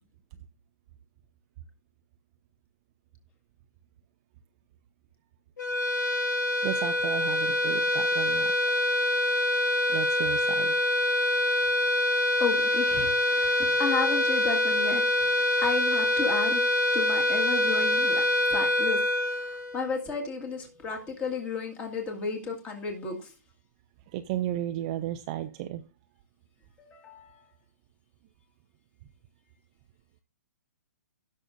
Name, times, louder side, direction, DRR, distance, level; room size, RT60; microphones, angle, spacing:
sound 1, 5.6-20.2, left 1 dB, 85° left, 1.6 m, -25 dB
voice 1, 6.6-8.5 9.9-10.8 24.1-25.8, right 13 dB, 25° right, 9 dB, 0.4 m, -34 dB
voice 2, 12.4-15.0 15.6-16.6 16.9-18.2 18.5-23.3 26.8-27.5, left 5 dB, 15° left, 2 dB, 1.9 m, -33 dB
17.0 x 6.4 x 2.6 m, 0.31 s
hypercardioid pair, 170°, 9 cm